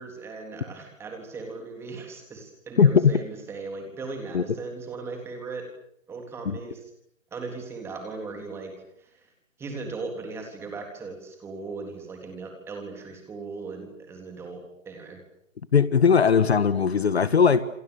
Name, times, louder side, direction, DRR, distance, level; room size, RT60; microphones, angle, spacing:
voice 1, 0.0-5.7 6.1-6.8 7.3-8.7 9.0-9.3 9.6-15.2, right 3 dB, 5° right, 3 dB, 3.6 m, -38 dB
voice 2, 2.8-3.1 4.3-4.4 6.4-6.6 15.7-17.6, left 6 dB, 50° left, 14 dB, 1.6 m, -19 dB
28.0 x 27.5 x 6.9 m, 0.71 s
figure-of-eight pair, 155°, 39 cm